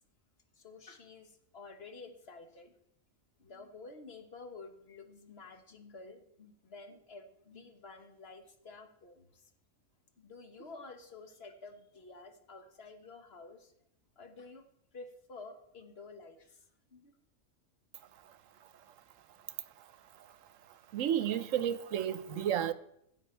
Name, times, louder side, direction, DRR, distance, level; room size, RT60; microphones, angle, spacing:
voice 1, 0.6-2.7 3.4-9.4 10.2-13.7 14.2-14.6 14.9-17.1, left 3 dB, 50° left, 1.4 m, -51 dB
voice 2, 20.9-22.7, right 10 dB, 75° right, 1.0 m, -31 dB
15.5 x 8.0 x 4.4 m
omnidirectional pair, 1.4 m